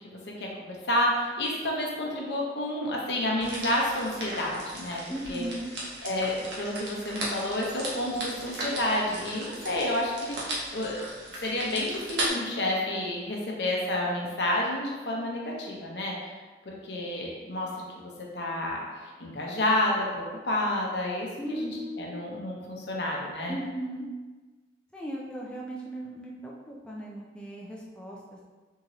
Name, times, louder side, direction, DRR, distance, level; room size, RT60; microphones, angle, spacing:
voice 1, 0.1-5.0 5.3-5.5 6.0-11.0 11.4-16.3 16.7-17.7 18.0-18.8 19.2-21.7 22.0-23.6, left 1 dB, 70° left, -2 dB, 0.7 m, -30 dB
sound 1, 3.4-12.3, right 1 dB, 80° right, 0.8 m, -37 dB
voice 2, 5.1-5.7 21.4-22.3 23.5-24.1 24.9-28.4, right 1 dB, 5° left, -4 dB, 0.4 m, -37 dB
3.6 x 2.8 x 3.0 m, 1.3 s
head